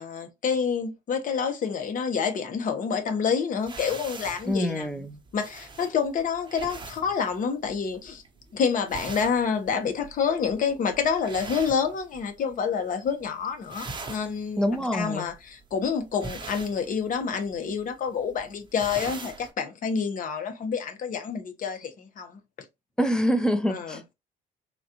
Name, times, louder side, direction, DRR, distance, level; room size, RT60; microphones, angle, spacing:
voice 1, 0.0-4.9 5.3-8.2 8.5-14.6 14.9-22.4 23.7-24.0, left 6 dB, 55° left, 1.0 m, -28 dB
sound 1, 3.6-12.5 12.8-13.3 13.5-19.5, right 3 dB, 30° right, 1.0 m, -42 dB
voice 2, 4.4-5.2 14.6-15.3 23.0-24.1, equal, 5° left, 0.7 m, -26 dB
4.0 x 2.5 x 2.9 m
cardioid pair, 110°, 17 cm